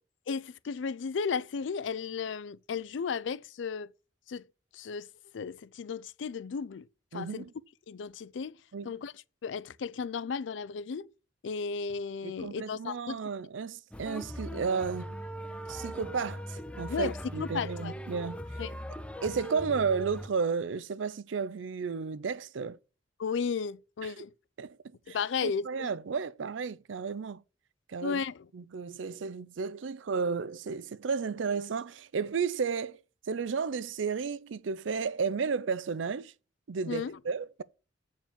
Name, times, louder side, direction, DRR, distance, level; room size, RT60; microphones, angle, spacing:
voice 1, 0.3-3.9 4.3-4.4 4.7-5.1 5.3-6.9 7.1-7.5 7.9-8.6 8.8-9.1 9.4-11.1 11.4-13.2 16.9-17.9 18.6-18.7 23.2-24.3 25.1-25.9 28.0-28.4 36.9-37.2, left 5 dB, 70° left, 0.4 m, -34 dB
voice 2, 7.1-7.5 8.7-8.9 12.2-15.2 15.7-18.4 19.2-22.8 24.0-24.2 24.6-24.8 25.1-27.4 27.9-28.2 28.5-33.0 33.3-36.3 36.7-37.6, right 5 dB, 90° right, 0.5 m, -33 dB
sound 1, 13.9-20.3, equal, 5° left, 0.5 m, -40 dB
7.3 x 4.6 x 6.7 m
head